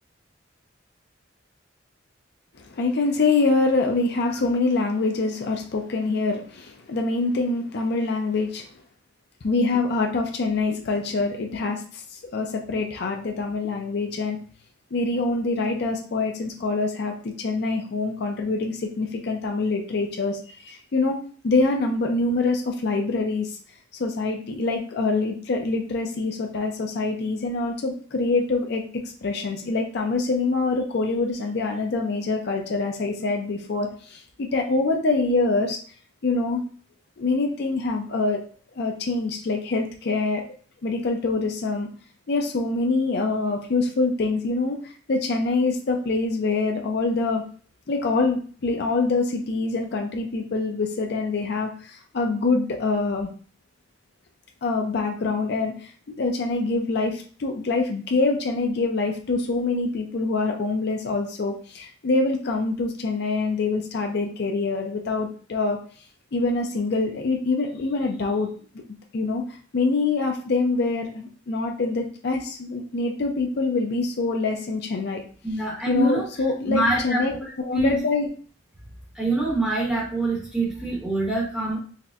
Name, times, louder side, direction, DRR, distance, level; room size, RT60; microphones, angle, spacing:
voice 1, 2.6-8.6 9.4-14.4 14.9-21.2 21.4-23.6 24.0-35.8 36.2-36.6 37.2-38.4 38.8-40.4 40.8-41.9 42.3-47.4 47.9-53.3 54.6-65.8 66.3-68.5 69.1-69.4 69.7-75.2 75.9-77.3 77.6-78.3, left 3 dB, 55° left, 2 dB, 0.4 m, -25 dB
voice 2, 75.4-76.3 76.7-77.9 79.1-81.8, right 2 dB, 5° right, -6 dB, 0.9 m, -25 dB
4.1 x 2.1 x 2.4 m, 0.42 s
head